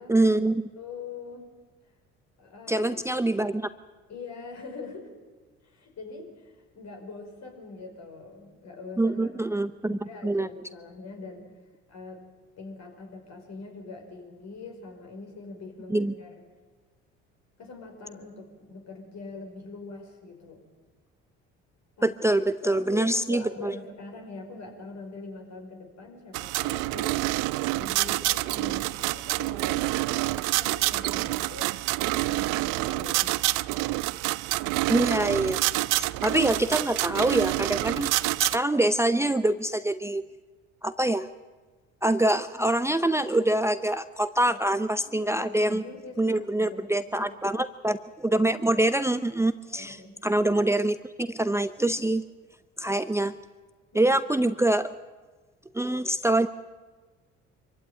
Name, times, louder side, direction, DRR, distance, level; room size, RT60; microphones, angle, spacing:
voice 1, 0.1-0.6 2.7-3.7 9.0-10.5 15.9-16.1 22.0-23.8 34.9-35.7 35.9-38.1 38.4-40.2 40.8-41.3 42.0-45.8 46.2-52.2 52.8-53.3 53.9-54.9 55.7-56.5, right 1 dB, 10° right, 11 dB, 0.7 m, -25 dB
voice 2, 0.8-1.5 2.4-2.9 4.1-5.1 5.6-11.5 11.9-12.2 12.6-16.3 17.6-20.6 22.0-22.1 22.6-27.2 27.8-31.8 32.0-33.3 44.5-44.6 45.2-47.4 49.8-50.2 53.9-54.2, left 3 dB, 55° left, 3 dB, 5.4 m, -43 dB
sound 1, 26.3-38.6, right 20 dB, 70° right, 0.6 m, -27 dB
24.0 x 15.5 x 9.3 m, 1.3 s
hypercardioid pair, 65°, 32 cm